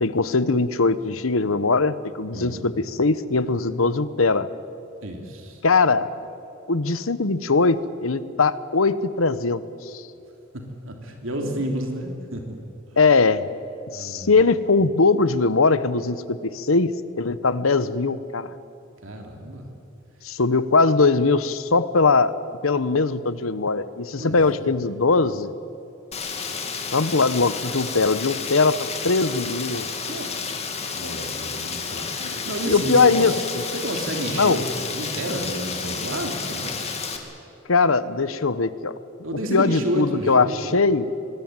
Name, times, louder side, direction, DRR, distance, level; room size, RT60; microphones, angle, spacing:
voice 1, 0.0-4.5 5.6-6.1 6.7-10.0 13.0-13.5 13.9-16.9 17.2-18.5 20.2-22.3 22.6-25.5 26.9-29.9 32.2-32.3 32.6-33.6 34.3-34.6 37.7-39.0 39.5-41.1, left 4 dB, 80° left, 15 dB, 1.0 m, -21 dB
voice 2, 2.3-2.7 5.0-5.6 10.5-12.6 13.9-14.3 19.0-19.7 24.2-24.7 30.1-30.6 30.9-33.5 33.7-36.7 39.2-40.7, right 1 dB, 70° right, 3 dB, 3.0 m, -31 dB
Rain, 26.1-37.2, left 5 dB, 30° left, 2.6 m, -31 dB
24.5 x 20.0 x 9.0 m, 2.8 s
head